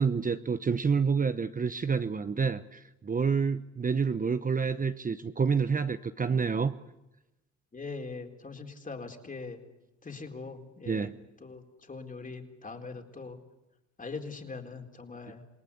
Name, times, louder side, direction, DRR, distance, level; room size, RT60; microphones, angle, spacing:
voice 1, 0.0-6.7 10.9-11.1, right 5 dB, 25° right, 11 dB, 1.0 m, -28 dB
voice 2, 7.7-9.6 10.0-11.1 11.4-13.4 14.0-15.4, left 4 dB, 25° left, 4 dB, 4.1 m, -41 dB
28.0 x 19.5 x 8.4 m, 0.98 s
cardioid pair, 90°, 30 cm